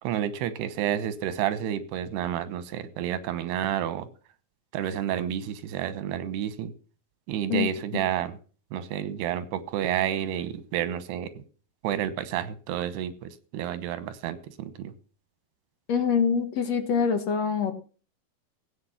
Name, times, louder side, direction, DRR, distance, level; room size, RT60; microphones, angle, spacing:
voice 1, 0.0-4.1 4.7-6.7 7.3-8.4 8.7-11.4 11.8-14.9, right 10 dB, 85° right, 13 dB, 3.2 m, -30 dB
voice 2, 15.9-17.7, left 6 dB, 55° left, 7 dB, 2.1 m, -25 dB
16.5 x 8.4 x 5.7 m, 0.39 s
omnidirectional pair, 4.5 m